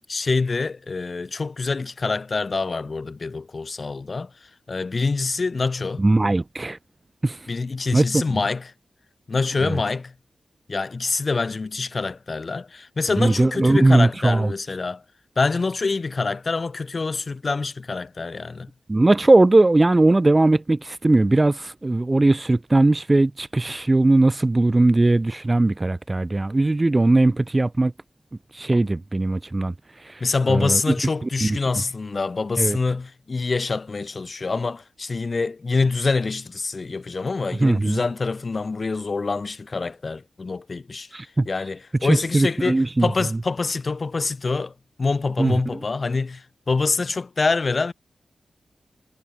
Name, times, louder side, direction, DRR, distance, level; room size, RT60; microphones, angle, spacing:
voice 1, 0.0-4.3 4.7-6.0 7.5-8.7 9.3-10.1 10.7-15.0 15.4-18.7 30.2-47.9, left 4 dB, 40° left, 2.0 m, -25 dB
voice 2, 6.0-6.8 7.2-7.4 7.9-8.4 9.6-9.8 13.2-14.5 18.9-27.9 28.5-29.7 30.0-30.2 30.5-30.8 31.2-31.6 32.6-32.8 37.6-38.0 41.1-41.5 42.0-43.1 45.4-45.5, right 2 dB, 25° right, 0.8 m, -19 dB
wide cardioid pair, 110°, 0 cm